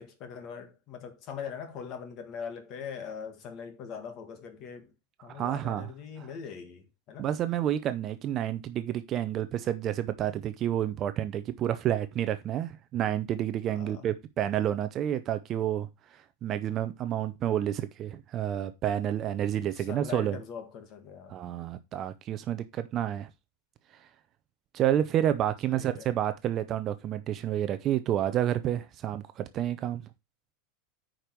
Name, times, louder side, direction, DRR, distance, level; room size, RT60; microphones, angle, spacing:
voice 1, 0.0-4.9 5.2-7.3 13.7-14.1 19.7-21.4 25.7-26.1, left 7 dB, 30° left, 1.6 m, -42 dB
voice 2, 5.3-5.9 7.2-20.4 21.3-23.3 23.9-24.1 24.7-30.1, right 11 dB, 25° right, 0.6 m, -30 dB
9.1 x 5.2 x 4.6 m
supercardioid pair, 170°, 0 cm